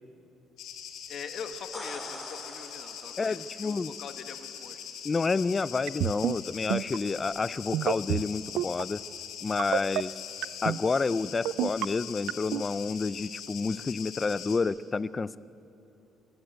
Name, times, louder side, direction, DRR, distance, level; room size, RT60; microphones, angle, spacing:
sound 1, 0.6-14.6, left 8 dB, 70° left, 3.0 m, -42 dB
voice 1, 1.1-4.8, left 6 dB, 50° left, 7 dB, 1.7 m, -43 dB
sound 2, 1.5-3.5 7.2-7.3, equal, ahead, 3.0 m, -44 dB
voice 2, 3.2-3.9 5.0-9.0 9.4-10.1 10.6-15.4, left 4 dB, 20° left, 18 dB, 0.4 m, -29 dB
sound 3, 5.9-6.3 6.7-7.0 7.7-8.2 8.6-8.8 9.6-10.0 10.4-10.8 11.4-11.8 12.3-12.6, right 15 dB, 80° right, 0.5 m, -28 dB
23.5 x 22.5 x 8.0 m, 2.9 s
cardioid pair, 150°, 0 cm